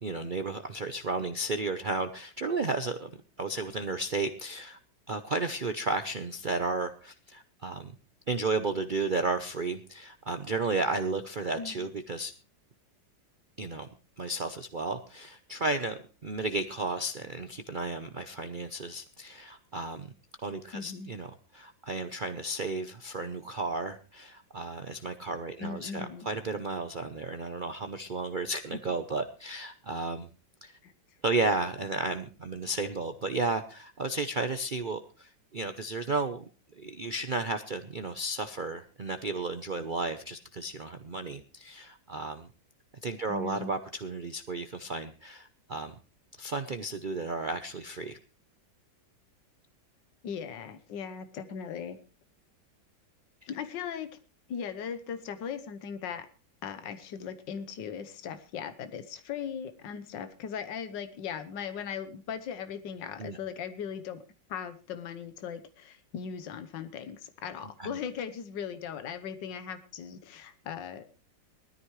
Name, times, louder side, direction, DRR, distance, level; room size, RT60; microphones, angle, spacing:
voice 1, 0.0-3.1 3.4-4.8 5.1-7.9 8.3-12.3 13.6-13.9 14.2-20.1 20.4-30.3 30.6-30.8 31.2-36.4 36.7-42.5 43.0-46.0 46.4-48.2 63.2-63.4 67.8-68.0, right 3 dB, 80° right, 8 dB, 0.4 m, -33 dB
voice 2, 11.6-11.9 20.7-21.1 25.6-26.3 30.8-30.9 43.3-43.8 50.2-52.0 53.5-54.1 54.5-56.3 56.6-64.2 64.5-71.0, left 7 dB, 75° left, 9 dB, 1.7 m, -38 dB
20.0 x 13.5 x 3.1 m, 0.34 s
omnidirectional pair, 2.0 m